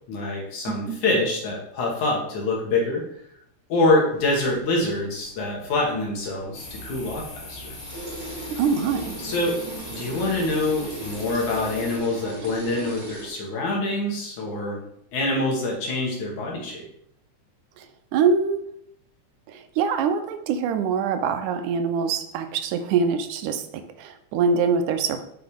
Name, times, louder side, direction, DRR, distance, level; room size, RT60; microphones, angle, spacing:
voice 1, 0.1-3.0 3.7-7.8 9.2-9.6 9.9-14.8 15.1-16.9, left 2 dB, 75° left, -1 dB, 3.3 m, -25 dB
voice 2, 0.7-1.0 8.6-9.2 17.8-17.9 18.1-18.6 19.5-23.7 24.0-25.2, right 5 dB, 80° right, 8 dB, 2.2 m, -24 dB
sound 1, 4.1-13.3, right 2 dB, 45° right, 2.6 m, -39 dB
sound 2, 6.5-12.0, left 2 dB, 45° left, 2.5 m, -40 dB
7.5 x 6.9 x 3.6 m, 0.71 s
omnidirectional pair, 3.5 m